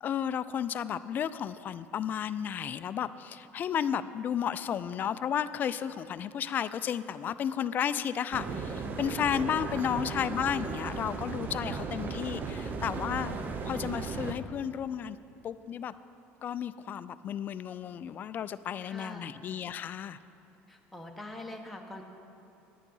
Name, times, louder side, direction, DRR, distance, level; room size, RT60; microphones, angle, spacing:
voice 1, 0.0-13.3 13.6-15.2 15.4-15.9 16.4-20.2, left 9 dB, 40° left, 14 dB, 0.3 m, -33 dB
sound 1, 8.3-14.3, right 4 dB, 35° right, 0.7 m, -36 dB
voice 2, 9.5-9.9 18.8-19.4 20.7-22.0, left 1 dB, ahead, 0 dB, 1.0 m, -44 dB
10.0 x 9.1 x 5.5 m, 2.9 s
cardioid pair, 125°, 5 cm